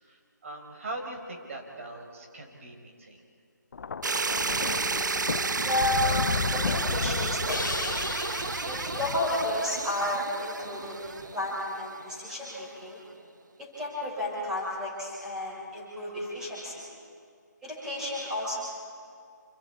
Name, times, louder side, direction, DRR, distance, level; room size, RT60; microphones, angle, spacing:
voice 1, 0.0-3.2, right 2 dB, 45° right, 2 dB, 4.2 m, -41 dB
Thunder, 3.7-10.1 11.1-11.3, left 5 dB, 55° left, 0.5 m, -34 dB
sound 1, 4.0-12.0, right 4 dB, 75° right, 0.8 m, -32 dB
voice 2, 5.6-6.1 6.5-8.0 8.6-13.0 13.8-16.8 17.6-18.6, left 1 dB, 5° right, -7 dB, 5.4 m, -32 dB
Crash cymbal, 7.5-10.6, left 3 dB, 85° left, 1.3 m, -37 dB
28.0 x 23.5 x 4.4 m, 2.2 s
figure-of-eight pair, 160°, 10 cm